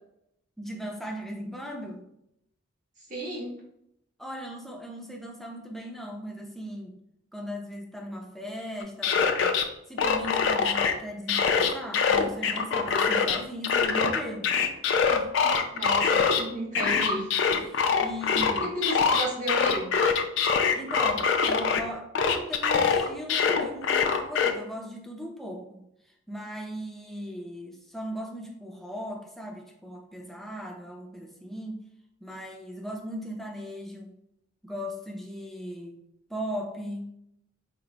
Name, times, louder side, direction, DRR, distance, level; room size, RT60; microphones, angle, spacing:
voice 1, 0.6-2.1 4.2-7.0 7.3-9.6 9.9-14.5 15.1-15.6 17.5-18.7 20.7-25.8 26.3-31.8 32.2-34.1 34.6-36.0 36.3-37.2, equal, ahead, 0 dB, 0.5 m, -38 dB
voice 2, 3.1-3.5 15.7-17.3 18.6-19.9, right 1 dB, 40° right, -5 dB, 1.3 m, -32 dB
sound 1, 8.8-9.6 10.0-10.9 11.3-13.4 13.6-16.4 16.8-21.8 22.2-24.5, left 6 dB, 65° left, 0.4 m, -24 dB
4.5 x 2.1 x 3.9 m, 0.78 s
head